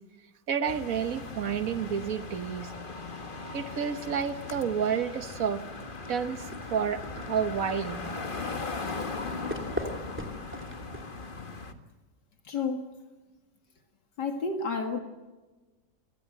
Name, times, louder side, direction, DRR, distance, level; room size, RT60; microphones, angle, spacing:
voice 1, 0.5-2.7 3.5-5.6 6.1-8.0, right 7 dB, 55° right, 1.7 m, -30 dB
sound 1, 0.7-11.7, left 3 dB, 30° left, 1.6 m, -38 dB
sound 2, 6.0-11.7, equal, 5° right, 3.0 m, -41 dB
voice 2, 12.4-12.9 14.2-15.0, left 4 dB, 75° left, 2.5 m, -30 dB
27.0 x 19.5 x 7.9 m
omnidirectional pair, 1.8 m